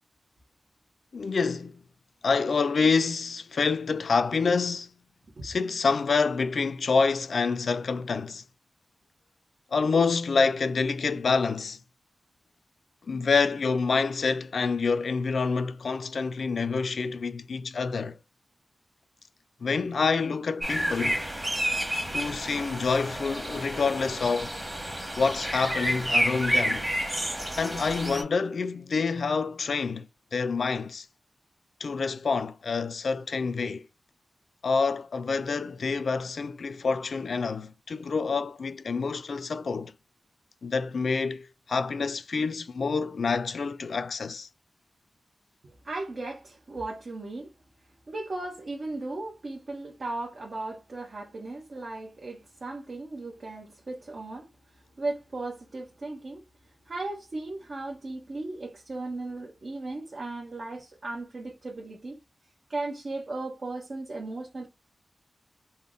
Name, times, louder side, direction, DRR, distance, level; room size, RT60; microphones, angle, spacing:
voice 1, 1.1-1.8 2.2-4.9 5.4-8.4 9.7-11.8 13.1-18.2 19.6-21.2 22.1-24.5 25.2-26.9 27.6-31.1 31.8-33.9 34.6-39.9 40.6-44.5, left 4 dB, 75° left, 0.4 m, -27 dB
sound 1, 20.6-28.2, equal, 15° right, 1.3 m, -30 dB
voice 2, 45.6-47.5 48.1-54.5 55.0-56.4 56.9-62.2 62.7-64.7, right 2 dB, 60° right, 1.1 m, -36 dB
3.5 x 2.1 x 3.8 m
cardioid pair, 50°, 0 cm